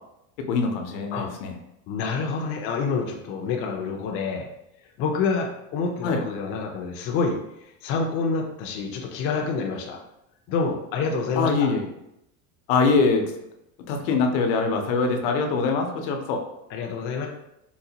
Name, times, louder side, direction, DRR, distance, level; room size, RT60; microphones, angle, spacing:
voice 1, 0.4-1.5 6.0-6.2 11.4-11.9 12.7-13.3 13.9-16.4, left 4 dB, 80° left, 4 dB, 0.7 m, -23 dB
voice 2, 1.9-4.5 5.0-10.0 10.5-11.7 16.7-17.3, left 4 dB, 35° left, 1 dB, 0.4 m, -27 dB
3.9 x 2.1 x 2.7 m, 0.83 s
cardioid pair, 155°, 37 cm